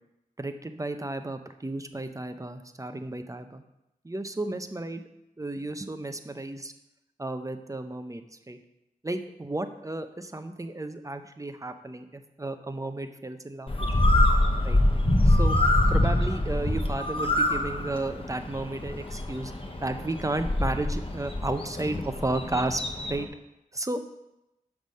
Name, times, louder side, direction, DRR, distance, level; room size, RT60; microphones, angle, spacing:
voice 1, 0.4-3.6 4.0-5.0 5.4-6.7 7.2-8.6 9.0-13.9 14.6-14.8 15.3-15.6 15.9-19.5 19.8-23.3 23.7-24.0, right 2 dB, 20° right, 8 dB, 0.6 m, -33 dB
Bird, 13.7-23.2, left 1 dB, 35° left, 1.0 m, -25 dB
5.9 x 5.4 x 6.4 m, 0.89 s
wide cardioid pair, 65°, 15 cm